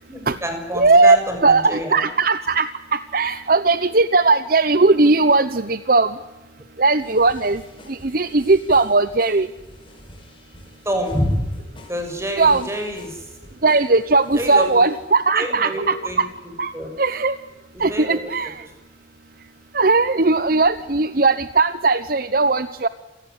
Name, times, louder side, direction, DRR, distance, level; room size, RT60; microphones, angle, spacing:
voice 1, 0.1-2.0 10.8-11.5 11.9-13.3 14.3-14.8 15.3-16.2 16.7-16.9 17.7-18.3, equal, 15° right, 5 dB, 6.7 m, -27 dB
voice 2, 0.7-1.2 1.4-6.2 6.8-7.6 7.9-9.5 12.4-12.7 13.6-16.3 16.6-17.4 17.8-18.6 19.7-22.9, right 3 dB, 50° right, 13 dB, 0.9 m, -18 dB
sound 1, 7.0-15.2 15.6-15.8, left 1 dB, 25° left, 5.6 m, -47 dB
28.0 x 18.0 x 9.9 m, 1.0 s
head